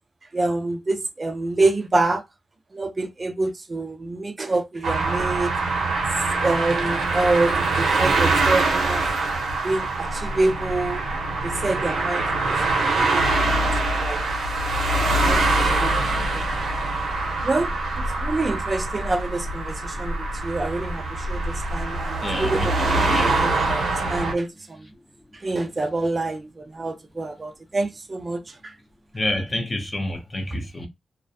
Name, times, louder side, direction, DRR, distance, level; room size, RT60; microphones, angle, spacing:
voice 1, 0.3-2.2 2.7-5.5 6.2-9.0 9.6-11.0 11.4-13.5 14.0-14.2 15.2-16.4 17.4-17.7 18.0-23.8 24.1-24.9 25.3-28.7, right 2 dB, 30° right, 0.3 m, -27 dB
sound 1, 4.8-24.3, right 2 dB, 85° right, 0.7 m, -24 dB
voice 2, 22.2-23.8 24.9-25.0 29.1-30.9, left 1 dB, 25° left, 0.5 m, -29 dB
2.4 x 2.1 x 2.6 m
wide cardioid pair, 145°, 0 cm